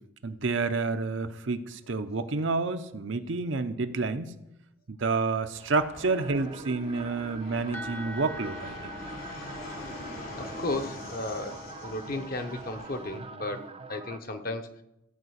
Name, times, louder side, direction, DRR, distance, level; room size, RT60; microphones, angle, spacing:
voice 1, 0.2-4.3 4.9-8.9, right 3 dB, 65° right, 9 dB, 0.8 m, -29 dB
Fixed-wing aircraft airplane, 5.5-13.2, left 1 dB, 80° left, 3.3 m, -44 dB
sound 1, 6.0-14.2, right 3 dB, 30° right, 0.5 m, -44 dB
sound 2, 7.7-13.3, left 1 dB, 10° left, 0.8 m, -46 dB
voice 2, 10.4-14.7, left 2 dB, 45° left, 6 dB, 1.0 m, -34 dB
15.0 x 5.0 x 8.0 m, 0.89 s
head